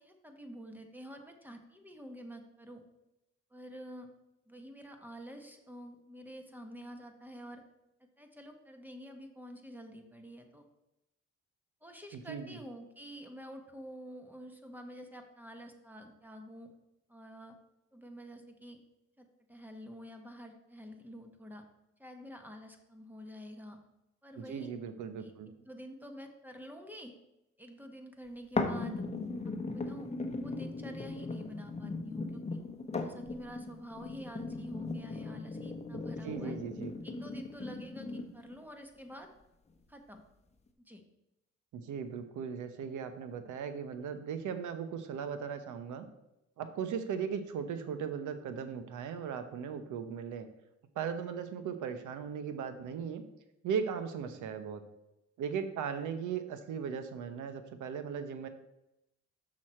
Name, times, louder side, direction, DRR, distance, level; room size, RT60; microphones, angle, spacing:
voice 1, 0.0-2.8 3.5-4.1 4.5-7.6 8.2-10.6 11.8-16.7 17.1-17.6 17.9-18.8 19.2-21.6 22.0-23.8 24.2-24.7 25.2-27.2 27.6-29.0 29.7-30.1 30.4-32.6 33.0-36.5 37.0-39.3 39.9-40.2 40.8-41.0, equal, 5° right, 5 dB, 1.2 m, -48 dB
voice 2, 12.1-12.6 24.4-25.5 35.9-36.9 41.7-46.1 46.6-50.5 50.9-53.2 53.6-54.8 55.4-58.5, right 7 dB, 80° right, 9 dB, 0.9 m, -38 dB
sound 1, 28.6-38.5 39.1-39.2, left 3 dB, 20° left, 1.0 m, -38 dB
6.3 x 6.3 x 4.3 m, 0.87 s
cardioid pair, 90°, 30 cm